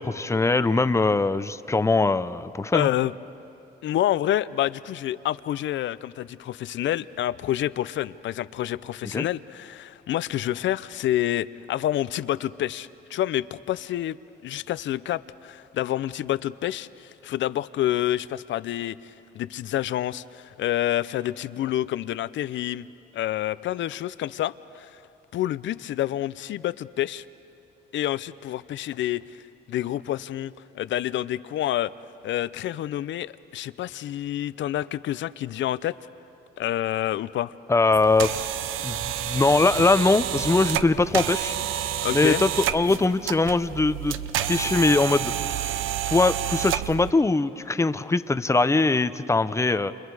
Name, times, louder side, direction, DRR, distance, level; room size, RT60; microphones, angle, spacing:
voice 1, 0.0-2.9 9.1-9.3 37.7-38.5 38.8-41.5 42.1-44.2 44.5-45.3 46.1-49.9, left 3 dB, 15° left, 13 dB, 0.7 m, -22 dB
voice 2, 2.7-3.1 3.8-14.2 14.4-22.9 23.1-24.9 25.3-27.2 27.9-29.4 29.7-31.9 32.2-36.0 36.6-37.5 42.0-42.4, left 13 dB, 70° left, 17 dB, 0.6 m, -28 dB
motor adjustable bed, 37.9-47.1, right 11 dB, 85° right, 0.7 m, -29 dB
29.5 x 28.5 x 4.8 m, 2.7 s
cardioid pair, 90°, 20 cm